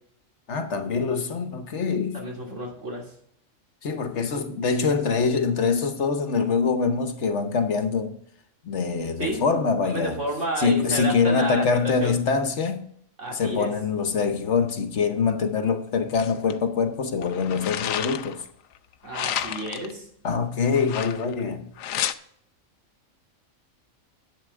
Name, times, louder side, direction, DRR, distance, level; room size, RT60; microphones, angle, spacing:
voice 1, 0.5-2.3 3.8-8.2 8.6-10.2 10.6-12.9 13.3-18.4 20.2-21.7, left 5 dB, 60° left, 1.2 m, -24 dB
voice 2, 2.1-3.1 9.2-9.5 9.8-12.1 13.2-13.7 19.0-20.0, right 1 dB, 65° right, 3.2 m, -31 dB
sound 1, 16.1-16.5 17.2-18.4 19.1-19.9 20.7-21.4 21.8-22.1, left 10 dB, 85° left, 1.0 m, -31 dB
11.0 x 8.3 x 3.6 m
omnidirectional pair, 1.4 m